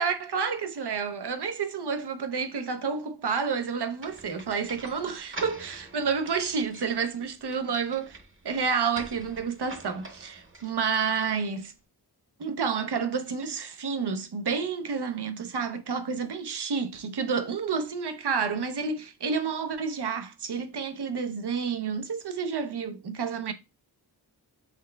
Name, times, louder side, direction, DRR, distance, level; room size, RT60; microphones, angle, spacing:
voice 1, 0.0-8.2 8.4-11.7 12.4-23.5, right 5 dB, 80° right, 0.7 m, -30 dB
sound 1, 4.0-11.6, right 2 dB, 30° right, 0.9 m, -46 dB
5.9 x 3.2 x 2.2 m
wide cardioid pair, 50°, 40 cm